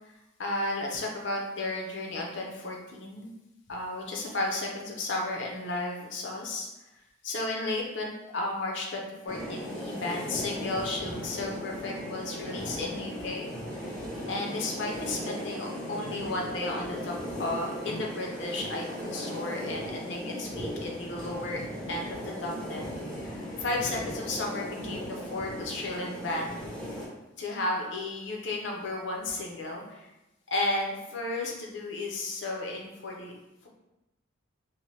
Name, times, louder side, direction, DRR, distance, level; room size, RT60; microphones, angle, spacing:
voice 1, 0.4-3.3 3.7-6.7 7.2-13.5 13.8-13.9 14.3-21.6 21.9-26.7 27.4-30.1 30.5-33.3, left 2 dB, 60° left, -1 dB, 0.5 m, -33 dB
sound 1, 9.3-27.1, equal, 5° left, 0.5 m, -37 dB
2.7 x 2.1 x 3.1 m, 0.96 s
head